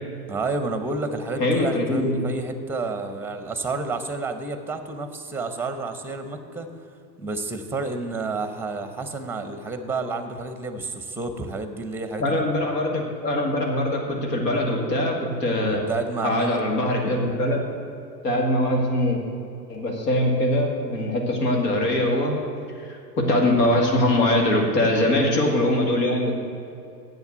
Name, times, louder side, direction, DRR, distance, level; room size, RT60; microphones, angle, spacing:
voice 1, 0.3-6.7 7.2-12.4 15.9-16.6, right 3 dB, 5° right, 8 dB, 0.9 m, -30 dB
voice 2, 1.4-2.2 12.2-15.8 16.2-17.6 18.2-19.2 19.7-22.4 22.8-26.3, left 1 dB, 75° left, 1 dB, 2.3 m, -22 dB
7.9 x 7.0 x 8.1 m, 2.5 s
hypercardioid pair, 95°, 50 cm